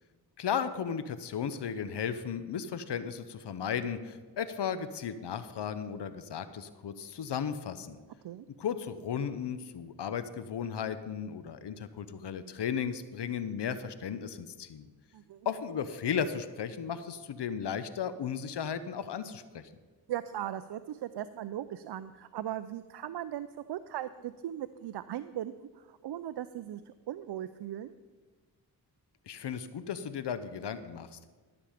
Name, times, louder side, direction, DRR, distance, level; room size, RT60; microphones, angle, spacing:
voice 1, 0.4-8.0 8.6-14.9 15.4-19.6 29.3-31.2, left 7 dB, 70° left, 12 dB, 0.8 m, -35 dB
voice 2, 15.1-15.5 20.1-27.9, right 11 dB, 70° right, 13 dB, 0.5 m, -38 dB
13.5 x 7.1 x 5.0 m, 1.4 s
cardioid pair, 55°, 42 cm